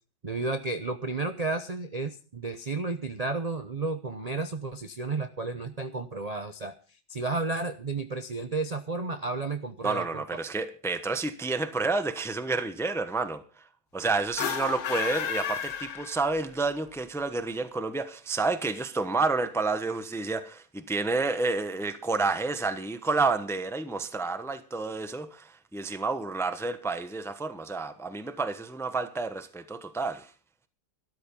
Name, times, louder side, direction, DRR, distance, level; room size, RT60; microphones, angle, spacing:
voice 1, 0.2-10.2, right 3 dB, 35° right, 0.6 m, -32 dB
voice 2, 9.8-13.4 13.9-30.3, right 3 dB, ahead, 0.7 m, -30 dB
sound 1, 14.3-16.6, left 8 dB, 75° left, 1.7 m, -32 dB
13.0 x 13.0 x 5.4 m
omnidirectional pair, 1.9 m